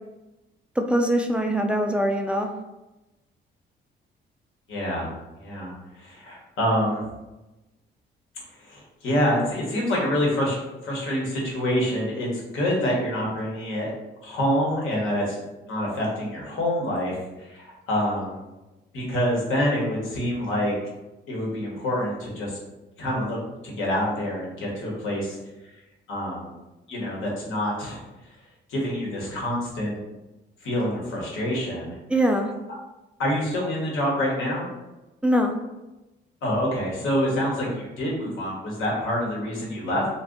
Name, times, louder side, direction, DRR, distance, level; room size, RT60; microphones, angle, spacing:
voice 1, 0.8-2.5 32.1-32.5 35.2-35.5, equal, 5° right, 3 dB, 0.3 m, -22 dB
voice 2, 4.7-5.1 5.4-7.0 8.6-10.6 10.8-13.9 14.2-18.4 18.9-20.7 21.3-22.6 23.0-23.4 23.6-25.4 26.1-26.5 26.9-28.0 28.7-30.0 30.6-32.0 33.2-34.7 36.4-40.1, equal, 85° left, -3 dB, 1.0 m, -26 dB
2.6 x 2.3 x 3.6 m, 1.0 s
cardioid pair, 90°, 20 cm